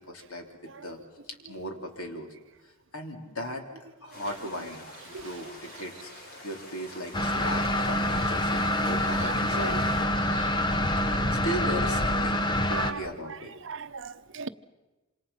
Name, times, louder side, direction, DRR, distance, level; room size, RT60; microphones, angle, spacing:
voice 1, 0.1-0.5 0.8-1.0 1.3-2.3 2.6-3.6 4.0-9.8 11.0-13.6, equal, 85° left, 3.7 m, -37 dB
sound 1, 4.1-10.0, left 1 dB, 45° left, 4.7 m, -47 dB
sound 2, 7.1-12.9, left 1 dB, 20° left, 1.0 m, -26 dB
voice 2, 12.7-13.1 13.6-14.5, right 5 dB, 60° right, 0.9 m, -37 dB
27.0 x 27.0 x 5.7 m
head